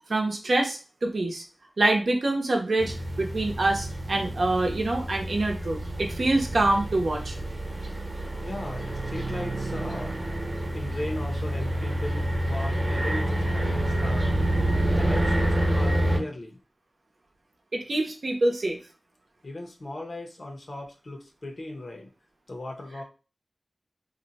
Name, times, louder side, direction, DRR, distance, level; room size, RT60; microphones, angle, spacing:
voice 1, 0.1-1.4 1.8-7.4 17.7-18.8, right 2 dB, 75° right, 2 dB, 0.7 m, -25 dB
sound 1, 2.8-16.2, right 1 dB, 35° right, 0.9 m, -28 dB
voice 2, 8.4-14.3 14.9-16.6 19.4-22.1 22.5-23.0, left 1 dB, 60° left, 1 dB, 0.8 m, -37 dB
2.6 x 2.2 x 4.0 m, 0.33 s
wide cardioid pair, 70°, 0 cm